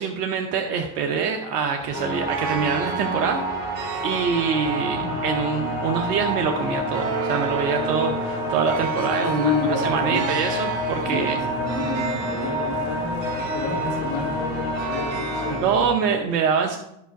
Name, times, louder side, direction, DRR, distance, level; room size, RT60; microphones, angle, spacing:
voice 1, 0.0-11.4 15.5-16.8, right 6 dB, 85° right, 3 dB, 0.8 m, -25 dB
sound 1, 1.8-15.9, right 4 dB, 70° right, 1.4 m, -35 dB
sound 2, 1.9-15.6, equal, 85° left, 3.3 m, -28 dB
voice 2, 9.3-10.2 11.0-15.9, left 3 dB, 70° left, -1 dB, 2.8 m, -30 dB
11.5 x 5.6 x 5.1 m, 0.83 s
hypercardioid pair, 40°, 47 cm